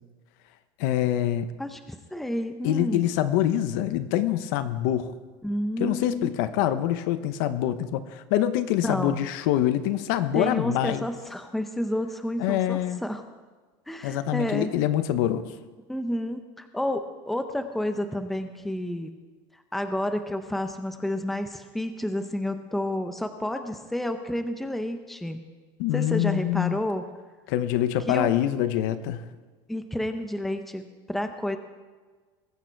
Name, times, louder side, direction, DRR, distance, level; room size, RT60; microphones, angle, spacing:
voice 1, 0.8-1.5 2.6-5.1 5.8-11.0 12.4-13.0 14.0-15.5 25.8-26.8 27.5-29.2, left 12 dB, 70° left, 12 dB, 0.9 m, -25 dB
voice 2, 1.6-3.1 5.4-6.4 8.8-9.3 10.3-13.2 13.9-14.7 15.9-19.1 19.7-25.4 25.9-27.1 28.1-28.3 29.7-31.6, left 1 dB, ahead, 7 dB, 0.7 m, -30 dB
21.5 x 8.7 x 4.6 m, 1.4 s
cardioid pair, 170°, 11 cm